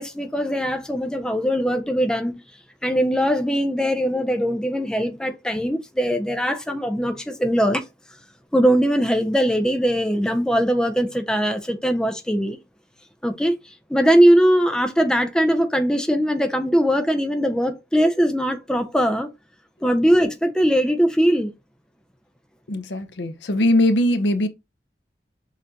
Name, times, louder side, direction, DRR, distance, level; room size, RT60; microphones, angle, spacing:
voice 1, 0.0-2.4 2.8-7.8 8.5-12.6 13.2-13.6 13.9-19.3 19.8-21.5, equal, 5° left, 0.4 m, -20 dB
voice 2, 22.7-24.5, left 1 dB, 70° left, 0.6 m, -20 dB
6.5 x 2.5 x 2.8 m
head